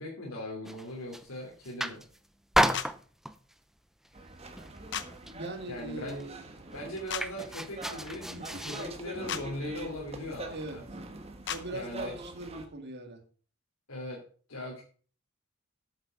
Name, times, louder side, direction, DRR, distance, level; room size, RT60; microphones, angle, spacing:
voice 1, 0.0-2.0 5.7-6.2 6.7-10.8 11.7-12.2 13.9-14.2 14.5-14.8, left 1 dB, 90° left, 2.9 m, -39 dB
sound 1, 0.6-1.3 1.6-2.2 2.5-3.5 4.0-4.3 4.6-5.5 5.8-5.9 6.1-8.9, right 1 dB, ahead, 0.5 m, -32 dB
sound 2, 2.7-2.9 4.9-5.1 7.1-7.2 9.3-9.4 11.4-11.6, left 9 dB, 60° left, 0.8 m, -33 dB
sound 3, 4.1-12.6, right 1 dB, 30° right, 1.4 m, -44 dB
voice 2, 5.3-6.4 8.1-8.7 10.5-10.8 11.5-13.2, right 2 dB, 55° right, 2.0 m, -41 dB
8.7 x 7.9 x 5.3 m
head